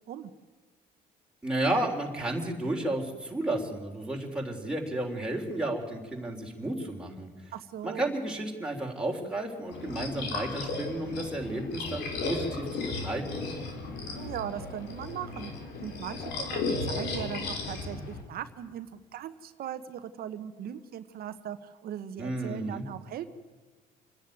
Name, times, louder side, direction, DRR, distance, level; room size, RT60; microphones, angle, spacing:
voice 1, 1.4-7.3 7.8-13.4 22.2-22.8, right 1 dB, 5° right, -1 dB, 3.4 m, -32 dB
voice 2, 7.5-8.1 14.2-15.5 15.8-23.3, right 10 dB, 65° right, 10 dB, 1.1 m, -39 dB
sound 1, 9.7-18.2, left 3 dB, 80° left, 3.5 m, -35 dB
27.5 x 10.5 x 9.3 m, 1.3 s
cardioid pair, 110°, 17 cm